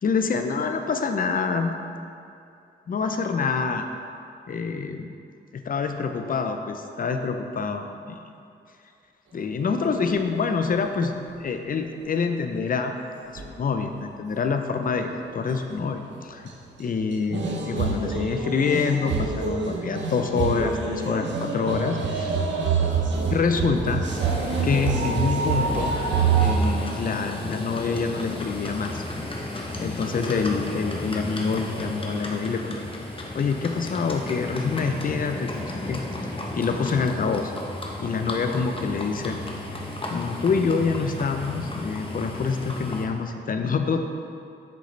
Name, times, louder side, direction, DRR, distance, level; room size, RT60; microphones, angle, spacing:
voice 1, 0.0-1.8 2.9-3.9 4.5-5.1 5.5-8.2 9.3-13.0 13.3-16.5 16.8-22.4 23.3-24.1 24.6-26.0 26.4-29.0 29.8-32.8 33.3-36.0 36.5-37.5 38.0-39.4 39.7-39.8 40.1-44.0, left 5 dB, 50° left, 6 dB, 0.6 m, -26 dB
sound 1, 13.4-13.5 14.9-15.2 15.5-15.6 17.3-26.6, right 5 dB, 80° right, 0.8 m, -26 dB
Livestock farm animals working animals, 24.0-43.1, left 1 dB, 30° left, 1.0 m, -34 dB
7.9 x 6.5 x 3.3 m, 2.5 s
cardioid pair, 80°, 18 cm